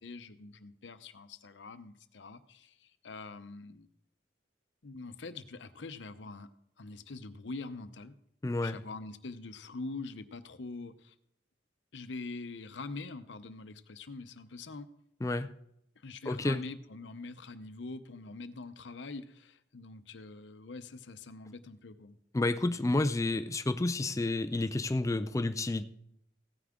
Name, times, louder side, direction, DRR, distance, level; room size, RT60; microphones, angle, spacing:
voice 1, 0.0-3.9 4.8-6.5 6.8-8.2 8.6-11.1 11.9-14.9 16.0-22.2, left 3 dB, 80° left, 12 dB, 0.7 m, -44 dB
voice 2, 8.4-8.8 15.2-15.5 16.3-16.6 22.3-25.8, left 2 dB, 20° left, 9 dB, 0.4 m, -30 dB
16.0 x 9.5 x 3.7 m, 0.76 s
head